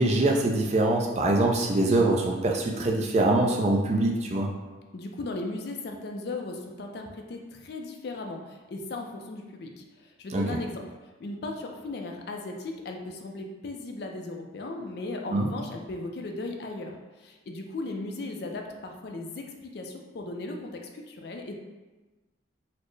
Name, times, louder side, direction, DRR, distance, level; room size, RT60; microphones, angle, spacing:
voice 1, 0.0-4.5 10.3-10.5 15.3-15.5, right 2 dB, 35° right, 0 dB, 0.4 m, -23 dB
voice 2, 4.9-10.8 11.2-21.6, left 2 dB, 55° left, 3 dB, 0.4 m, -37 dB
4.1 x 2.0 x 3.1 m, 1.2 s
head